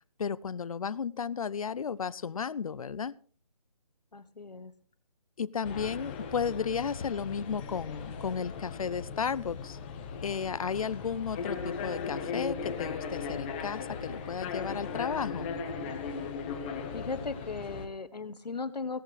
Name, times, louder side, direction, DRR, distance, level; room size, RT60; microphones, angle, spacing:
voice 1, 0.2-3.1 5.4-9.8 10.2-15.5, left 6 dB, 60° left, 19 dB, 0.5 m, -33 dB
voice 2, 4.1-4.7 16.9-19.0, left 4 dB, 85° left, 12 dB, 1.2 m, -37 dB
sound 1, 5.6-17.9, left 5 dB, 15° left, 0.9 m, -38 dB
17.0 x 14.0 x 3.3 m, 0.43 s
figure-of-eight pair, 160°, 20 cm